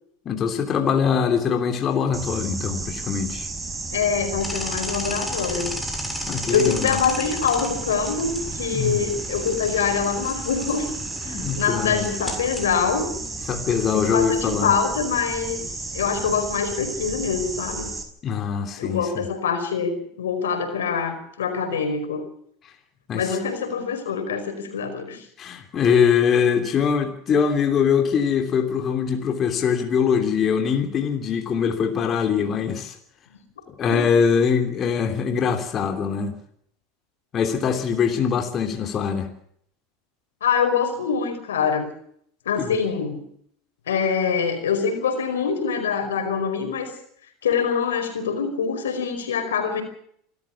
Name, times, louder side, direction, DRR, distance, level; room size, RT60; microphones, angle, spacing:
voice 1, 0.2-3.5 6.3-7.0 8.7-9.0 11.2-12.1 13.5-14.7 18.2-19.3 23.1-23.4 25.4-33.0 33.8-36.4 37.3-39.3 42.6-42.8, left 7 dB, 35° left, 4 dB, 3.2 m, -23 dB
sound 1, 2.1-18.0, right 3 dB, 20° right, 5.2 m, -33 dB
voice 2, 3.9-5.7 6.5-10.9 11.2-13.1 13.9-15.6 15.9-17.9 18.8-22.2 23.1-25.2 33.3-33.4 33.9-34.1 40.4-41.9 42.4-43.2 43.9-46.9 47.4-49.8, left 6 dB, 85° left, 7 dB, 5.0 m, -24 dB
sound 2, 4.4-14.8, left 2 dB, 10° left, 7.5 m, -37 dB
27.0 x 14.0 x 7.2 m, 0.68 s
hypercardioid pair, 90°, 0 cm